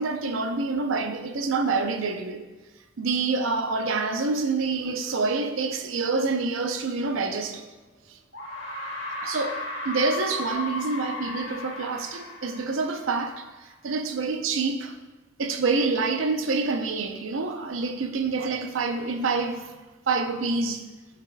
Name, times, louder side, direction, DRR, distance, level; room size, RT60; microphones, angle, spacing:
voice 1, 0.0-2.4 3.0-7.6 8.1-8.2 9.2-9.6 9.8-15.0 15.4-19.7 20.1-20.8, right 4 dB, 85° right, 0.6 m, -27 dB
sound 1, 7.5-7.6 8.3-13.5, left 2 dB, 65° left, 1.5 m, -35 dB
13.0 x 5.8 x 2.2 m
head